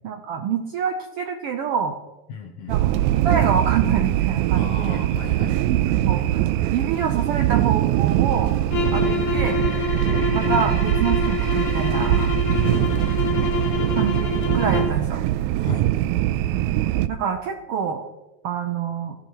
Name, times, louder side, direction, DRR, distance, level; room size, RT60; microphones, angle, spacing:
voice 1, 0.0-2.0 2.7-2.9 3.2-5.0 5.7-6.4 6.7-8.6 8.9-9.6 10.3-12.3 14.0-15.2 16.5-16.7 17.1-18.1 18.4-19.2, right 7 dB, 70° right, 4 dB, 1.4 m, -26 dB
voice 2, 2.3-2.8 4.5-5.6 5.9-6.2 12.4-13.4 15.6-15.9, left 6 dB, 65° left, 2 dB, 1.9 m, -36 dB
sound 1, 2.7-17.1, right 13 dB, 85° right, 2.0 m, -22 dB
sound 2, 8.7-15.0, left 6 dB, 85° left, 2.9 m, -27 dB
17.5 x 13.5 x 3.0 m, 1.0 s
omnidirectional pair, 3.3 m